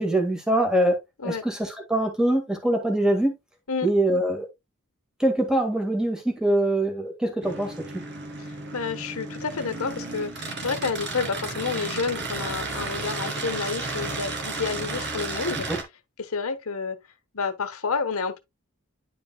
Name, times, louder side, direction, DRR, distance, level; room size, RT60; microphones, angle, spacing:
voice 1, 0.0-3.3 3.8-4.5 5.2-7.7 15.7-15.8, right 1 dB, 5° right, 1.8 m, -23 dB
sound 1, 7.4-15.8, right 3 dB, 55° right, 2.1 m, -33 dB
voice 2, 8.4-15.7 16.2-17.0 17.3-18.4, left 5 dB, 75° left, 1.2 m, -30 dB
10.5 x 5.0 x 2.3 m
head